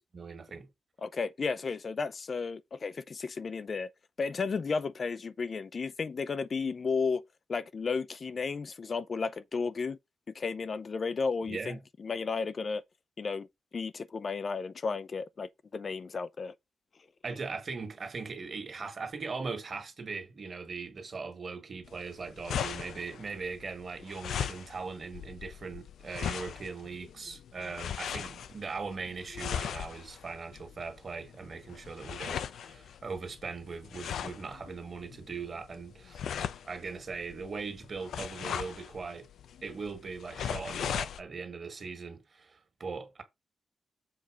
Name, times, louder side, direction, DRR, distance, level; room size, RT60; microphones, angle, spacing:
voice 1, 0.1-0.7 11.5-11.8 17.2-36.2 36.7-39.3 39.6-43.2, right 4 dB, 40° right, 1.9 m, -40 dB
voice 2, 1.0-3.9 4.2-7.2 7.5-10.0 10.3-12.8 13.2-13.5 13.7-16.5, left 4 dB, 35° left, 0.4 m, -33 dB
sound 1, 21.8-41.2, left 8 dB, 85° left, 0.6 m, -39 dB
7.4 x 4.2 x 5.0 m
wide cardioid pair, 170°, 0 cm